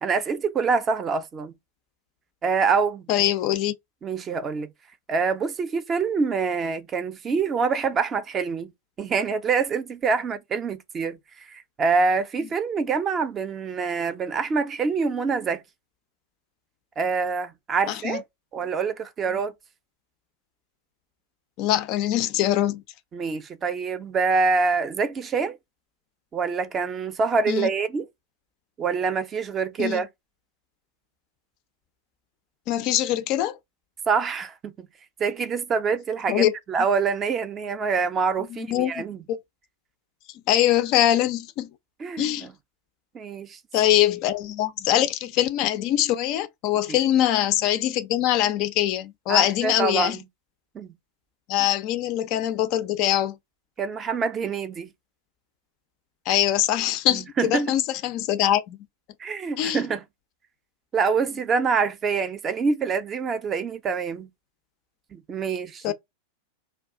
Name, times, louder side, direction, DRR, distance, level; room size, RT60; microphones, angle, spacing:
voice 1, 0.0-1.5 2.4-3.1 4.0-4.7 5.1-8.7 9.0-15.6 17.0-18.2 18.5-19.5 23.1-25.6 26.3-28.1 28.8-30.1 34.1-34.5 35.2-39.2 42.0-42.5 43.1-43.6 46.9-47.0 49.3-50.2 50.7-50.9 53.8-54.9 57.1-57.7 59.2-60.0 60.9-64.3 65.1-65.9, right 5 dB, 25° right, 0.5 m, -25 dB
voice 2, 3.1-3.7 17.9-18.2 21.6-22.8 27.5-27.7 29.8-30.0 32.7-33.6 36.3-36.5 38.5-39.4 40.5-41.7 42.2-42.5 43.7-50.2 51.5-53.4 56.3-58.8 59.6-59.8 65.8-65.9, left 12 dB, 40° left, 0.4 m, -23 dB
2.3 x 2.3 x 3.6 m
figure-of-eight pair, 90°, 0 cm